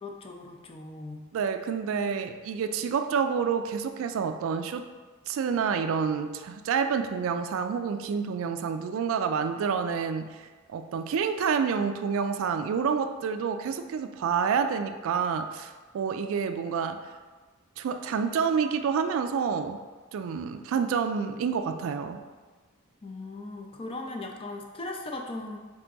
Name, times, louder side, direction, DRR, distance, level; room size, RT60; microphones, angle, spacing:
voice 1, 0.0-1.3 23.0-25.6, left 2 dB, 25° left, 2 dB, 0.4 m, -38 dB
voice 2, 1.3-4.9 5.3-17.0 17.8-19.8 20.1-22.2, right 6 dB, 70° right, 9 dB, 0.3 m, -28 dB
3.6 x 3.4 x 3.9 m, 1.4 s
head